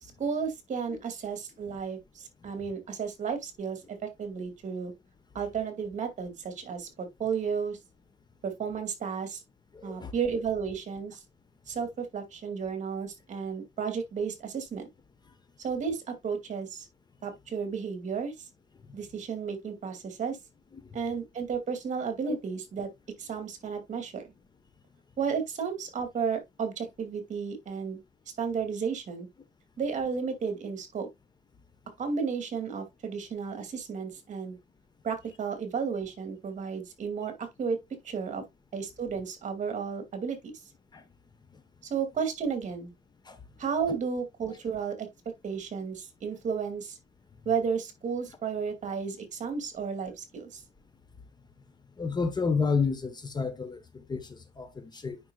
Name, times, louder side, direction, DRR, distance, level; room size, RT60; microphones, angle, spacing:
voice 1, 0.0-4.9 5.3-7.8 8.4-9.4 9.8-11.2 11.7-14.9 15.6-16.9 17.2-18.3 18.9-20.4 20.9-22.9 23.2-24.2 25.2-28.0 28.4-29.3 29.8-31.1 32.0-34.6 35.0-37.8 38.0-38.4 38.7-40.6 41.8-42.9 43.6-45.1 45.4-47.0 47.5-50.6, right 6 dB, 45° right, 2.3 m, -33 dB
voice 2, 9.7-10.1 22.3-22.4 40.9-41.0 43.3-43.4 52.0-55.2, left 5 dB, 25° left, 1.1 m, -30 dB
9.4 x 5.5 x 2.3 m
cardioid pair, 110°, 17 cm